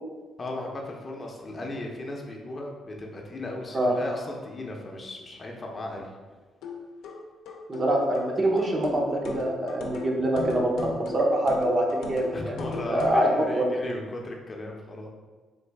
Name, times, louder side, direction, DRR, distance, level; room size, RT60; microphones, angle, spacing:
voice 1, 0.4-6.1 12.3-15.1, left 1 dB, 35° left, 0 dB, 0.6 m, -36 dB
sound 1, 6.6-13.3, left 3 dB, 85° left, 0.6 m, -37 dB
voice 2, 7.7-12.5 12.9-13.8, right 1 dB, 35° right, 0 dB, 0.7 m, -25 dB
3.9 x 2.4 x 3.4 m, 1.4 s
cardioid pair, 90°, 0 cm